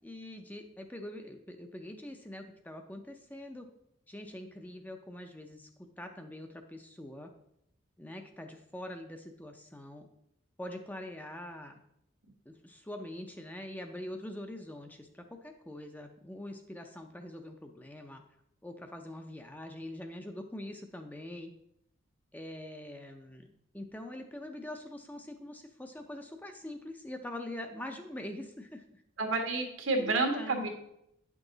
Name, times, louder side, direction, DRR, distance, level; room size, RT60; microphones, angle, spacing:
voice 1, 0.0-3.7 4.1-5.7 6.0-7.3 8.0-10.1 10.6-11.7 12.5-18.2 18.6-21.5 22.3-29.0 30.0-30.7, left 1 dB, 10° left, 4 dB, 0.5 m, -44 dB
voice 2, 29.2-30.7, right 3 dB, 75° right, 3 dB, 1.5 m, -29 dB
9.1 x 6.1 x 3.9 m, 0.77 s
head